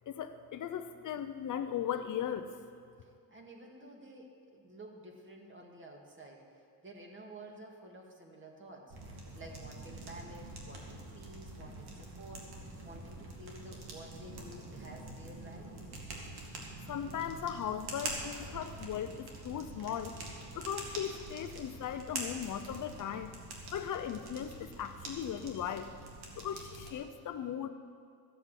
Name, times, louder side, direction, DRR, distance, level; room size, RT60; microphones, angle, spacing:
voice 1, 0.1-2.5 16.9-20.2 20.5-23.4 23.7-25.9 26.4-27.7, left 9 dB, 50° left, 9 dB, 0.7 m, -38 dB
voice 2, 3.0-9.0 9.3-12.5 12.8-15.9, right 1 dB, 30° right, 1 dB, 2.0 m, -51 dB
sound 1, 8.9-26.9, right 2 dB, 75° right, 2.4 m, -45 dB
13.5 x 8.2 x 7.4 m, 2.2 s
cardioid pair, 120°, 39 cm